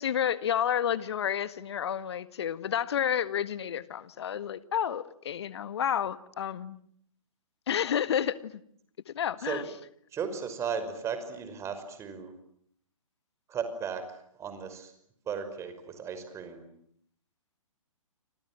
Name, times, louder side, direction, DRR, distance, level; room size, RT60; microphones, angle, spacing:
voice 1, 0.0-6.8 7.7-8.6 9.1-9.6, left 9 dB, 50° left, 15 dB, 1.8 m, -30 dB
voice 2, 10.1-12.3 13.5-14.0 14.3-14.9 15.3-16.7, right 6 dB, 15° right, 9 dB, 5.6 m, -35 dB
29.5 x 26.5 x 7.6 m, 0.68 s
figure-of-eight pair, 125°, 17 cm